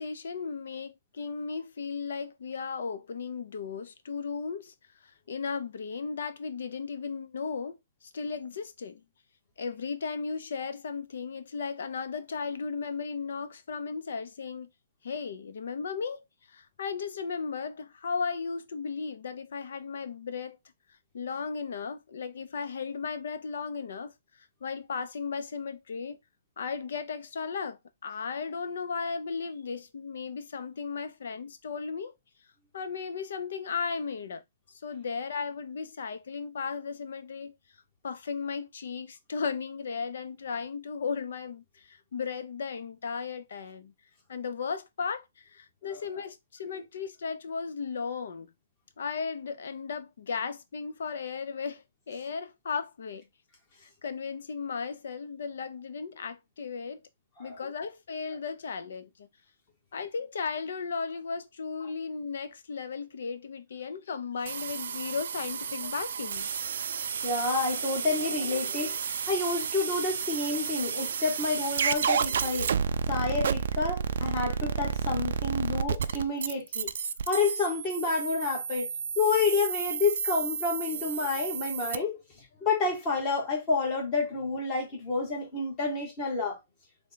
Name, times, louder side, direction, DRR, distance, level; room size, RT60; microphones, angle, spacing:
voice 1, 0.0-4.7 5.0-9.0 9.6-14.7 15.0-20.6 21.1-26.2 26.6-32.1 32.7-34.4 34.7-37.5 38.0-43.9 44.3-48.5 49.0-53.3 53.8-57.0 57.4-59.3 59.9-66.5, left 5 dB, 70° left, 0.6 m, -35 dB
sound 1, 64.5-82.0, right 6 dB, 65° right, 0.3 m, -31 dB
voice 2, 67.2-69.0 69.3-72.7 73.1-76.9 77.3-78.9 79.2-82.2 82.6-86.6, left 3 dB, 25° left, 1.2 m, -29 dB
3.5 x 2.2 x 3.9 m
hypercardioid pair, 165°, 0 cm